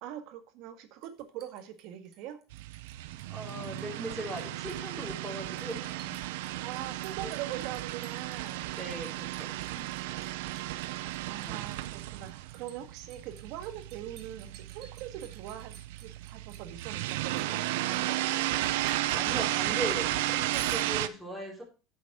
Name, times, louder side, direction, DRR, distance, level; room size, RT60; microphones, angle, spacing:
voice 1, 0.0-2.4 6.6-8.7 11.3-18.2, right 11 dB, 65° right, 9 dB, 1.6 m, -42 dB
Liquid, 1.0-2.9 3.2-3.8 4.1-18.0 18.6-19.2 20.5-20.9, right 6 dB, 45° right, 2.2 m, -52 dB
sound 1, 2.5-21.1, right 16 dB, 85° right, 0.6 m, -34 dB
voice 2, 3.3-6.1 8.3-9.8 11.0-11.1 11.5-11.6 19.1-21.6, right 1 dB, ahead, -3 dB, 4.2 m, -39 dB
8.7 x 7.2 x 4.7 m, 0.33 s
supercardioid pair, 125°, 0 cm